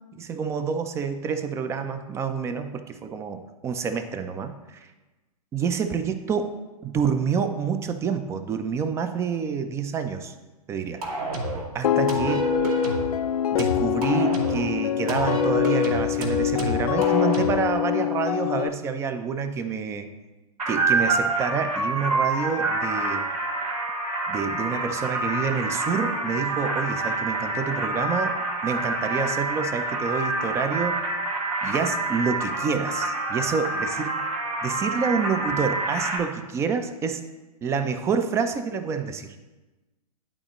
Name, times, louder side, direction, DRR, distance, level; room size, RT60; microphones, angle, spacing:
voice 1, 0.1-4.9 5.5-6.5 6.8-10.3 10.7-11.0 11.7-12.6 13.5-20.1 20.7-23.3 24.3-28.4 28.6-31.0 31.6-34.2 34.6-37.2 37.6-39.4, right 6 dB, 15° right, 9 dB, 0.4 m, -28 dB
sound 1, 11.0-11.7 12.1-13.1 13.6-14.7 15.1-17.7, equal, 70° right, 1.9 m, -28 dB
sound 2, 11.8-18.7, left 11 dB, 70° left, 0.4 m, -25 dB
sound 3, 20.6-36.2, right 3 dB, 90° right, 2.3 m, -27 dB
10.5 x 4.1 x 3.0 m, 1.1 s
hypercardioid pair, 120°, 20 cm